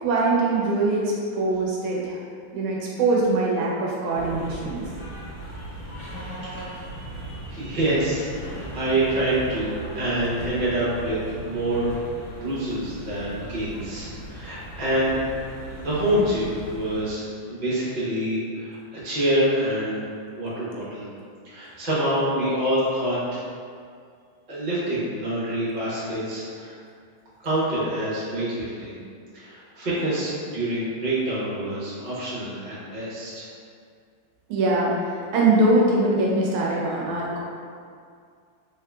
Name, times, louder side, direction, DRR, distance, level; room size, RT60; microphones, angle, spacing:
voice 1, 0.0-2.2 2.5-4.8 34.5-37.4, right 2 dB, 75° right, -3 dB, 1.3 m, -22 dB
sound 1, 4.1-17.0, right 1 dB, 50° left, 1.1 m, -38 dB
voice 2, 5.9-12.0 12.3-15.3 15.8-18.8 19.0-20.1 20.4-21.1 21.4-23.4 24.5-26.8 27.4-29.0 29.3-33.5, right 1 dB, 50° right, -9 dB, 0.5 m, -26 dB
3.6 x 3.0 x 2.3 m, 2.2 s
omnidirectional pair, 2.4 m